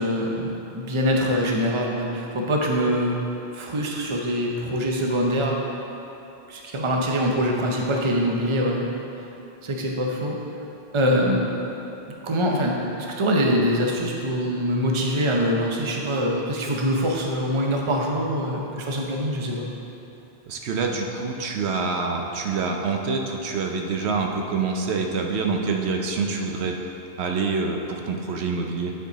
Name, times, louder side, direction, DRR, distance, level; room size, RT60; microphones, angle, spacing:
voice 1, 0.0-3.2 3.5-5.6 6.5-8.9 9.6-10.4 10.9-11.5 12.2-12.7 13.2-19.7, equal, 30° right, -1 dB, 0.7 m, -24 dB
voice 2, 20.5-26.8 27.2-28.9, right 4 dB, 80° right, 2 dB, 0.9 m, -26 dB
10.0 x 4.6 x 4.0 m, 3.0 s
omnidirectional pair, 1.1 m